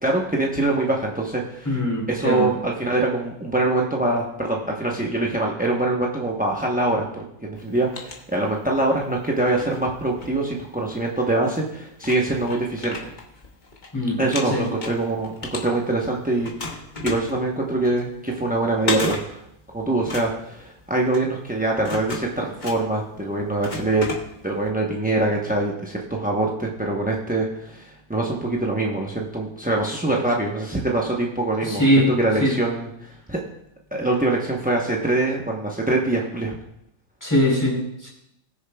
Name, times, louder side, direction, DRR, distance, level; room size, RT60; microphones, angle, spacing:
voice 1, 0.0-1.8 2.1-13.1 14.2-19.4 19.7-24.1 24.4-33.4 33.9-36.5, right 2 dB, 10° right, -1 dB, 0.4 m, -24 dB
voice 2, 1.6-2.5 13.9-14.2 14.5-14.6 31.6-32.1 32.4-32.5 37.2-38.1, equal, 10° left, -3 dB, 2.9 m, -21 dB
sound 1, 7.6-8.9 9.3-11.0 11.6-11.7 12.0-13.9 14.2-16.1 16.4-24.7, left 3 dB, 30° left, 1.1 m, -34 dB
20.5 x 6.8 x 2.3 m, 0.79 s
omnidirectional pair, 1.8 m